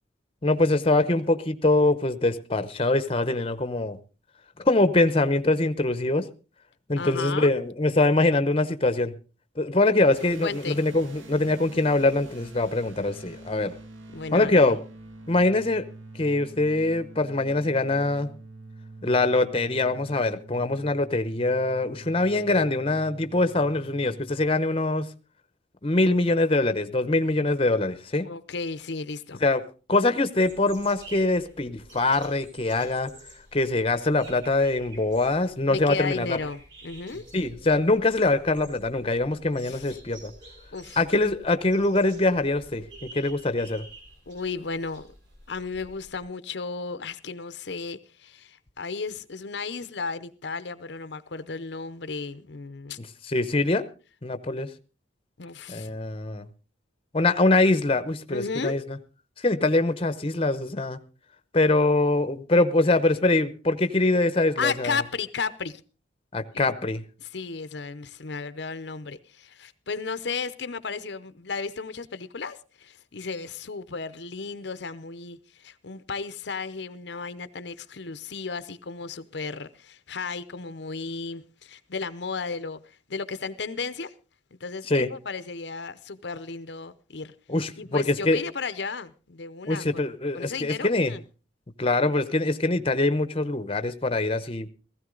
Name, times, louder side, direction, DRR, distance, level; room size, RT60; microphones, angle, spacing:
voice 1, 0.4-4.0 4.6-6.3 6.9-9.1 9.6-13.7 14.3-14.8 15.3-15.9 16.2-18.3 19.0-25.1 25.8-28.3 29.4-29.6 29.9-33.1 33.5-36.4 37.3-40.3 41.0-43.8 53.3-53.8 54.2-54.7 55.7-56.5 57.1-58.8 59.4-61.0 61.5-64.9 66.3-67.0 84.9-85.1 87.5-88.4 89.7-91.1 91.8-94.7, left 2 dB, 30° left, 0.8 m, -23 dB
voice 2, 7.0-7.5 10.4-10.8 14.1-14.7 28.2-29.4 35.7-37.2 39.6-40.0 40.7-41.0 44.3-45.1 45.5-53.0 55.4-55.9 58.3-58.8 64.6-65.8 66.5-66.7 67.2-84.1 84.5-87.3 87.8-89.8 90.3-91.2, left 4 dB, 60° left, 0.7 m, -34 dB
sound 1, 10.1-24.5, right 2 dB, 90° right, 1.6 m, -46 dB
sound 2, 30.4-46.2, right 1 dB, 70° right, 5.7 m, -49 dB
16.0 x 15.0 x 3.8 m
head